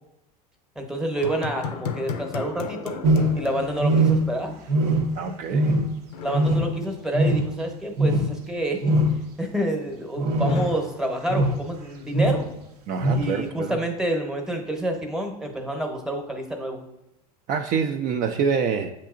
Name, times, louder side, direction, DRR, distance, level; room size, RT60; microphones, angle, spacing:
voice 1, 0.8-3.0 3.3-4.6 6.2-8.9 9.4-12.5 13.2-16.8, right 1 dB, 5° right, 3 dB, 0.8 m, -28 dB
sound 1, 1.1-4.5 4.8-4.9 6.1-7.5 10.4-11.9, left 6 dB, 90° left, 0.5 m, -36 dB
sound 2, 3.0-3.5 3.8-4.4 4.7-5.2 5.5-6.0 6.3-6.8 7.1-7.6 8.0-8.3 8.8-9.2 10.2-10.7 11.3-11.6 12.1-12.4 13.0-13.3, right 1 dB, 80° right, 0.7 m, -21 dB
voice 2, 5.2-5.7 12.9-13.8 17.5-18.9, right 6 dB, 45° right, 5 dB, 0.4 m, -26 dB
7.4 x 2.9 x 2.4 m, 0.90 s
hypercardioid pair, 95°, 20 cm